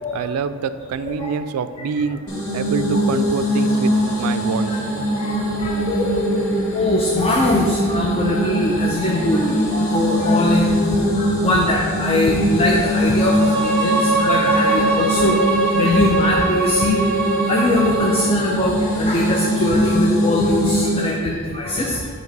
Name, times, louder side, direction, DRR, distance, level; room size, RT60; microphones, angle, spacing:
voice 1, 0.1-2.2 2.5-3.9 4.2-5.0, right 6 dB, 75° right, 12 dB, 0.3 m, -25 dB
voice 2, 1.0-1.3 4.7-4.8 5.2-6.5 6.7-17.2 17.5-22.1, left 1 dB, 25° left, -2 dB, 0.5 m, -21 dB
sound 1, 2.3-21.2, equal, 75° left, 1.5 m, -22 dB
Bowed string instrument, 13.2-18.3, right 2 dB, 5° left, 1.0 m, -21 dB
7.7 x 2.9 x 5.2 m, 2.1 s
head